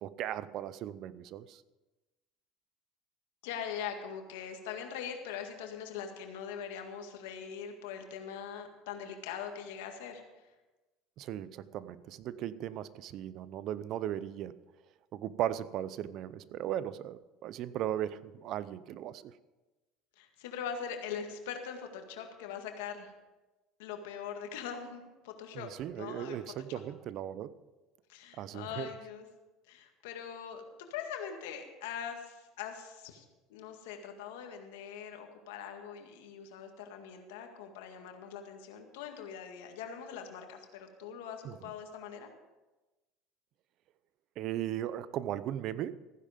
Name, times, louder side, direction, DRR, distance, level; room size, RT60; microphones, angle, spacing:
voice 1, 0.0-1.6 11.2-14.6 15.1-19.3 25.5-27.5 28.4-28.9 41.4-41.5 44.4-46.0, right 11 dB, 55° right, 17 dB, 0.6 m, -37 dB
voice 2, 3.4-10.4 20.2-23.1 23.8-25.7 26.0-26.4 26.7-26.8 28.1-29.3 29.7-30.6 30.9-33.2 33.5-42.3, left 7 dB, 85° left, 5 dB, 1.9 m, -42 dB
15.0 x 10.0 x 5.2 m, 1.1 s
supercardioid pair, 100°, 0 cm